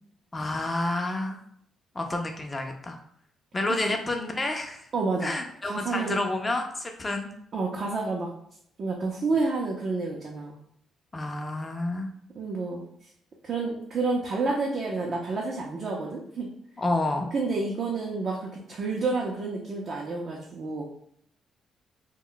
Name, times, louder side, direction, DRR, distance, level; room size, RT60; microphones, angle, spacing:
voice 1, 0.3-1.4 1.9-3.0 3.5-4.8 5.2-7.3 11.1-12.1 16.8-17.3, left 2 dB, 20° left, 3 dB, 0.5 m, -29 dB
voice 2, 4.9-5.3 5.6-6.2 7.5-8.3 8.8-10.6 12.4-12.8 13.4-16.5 17.3-20.8, right 3 dB, 50° right, -2 dB, 0.5 m, -29 dB
2.2 x 2.1 x 3.8 m, 0.69 s
cardioid pair, 90°, 0 cm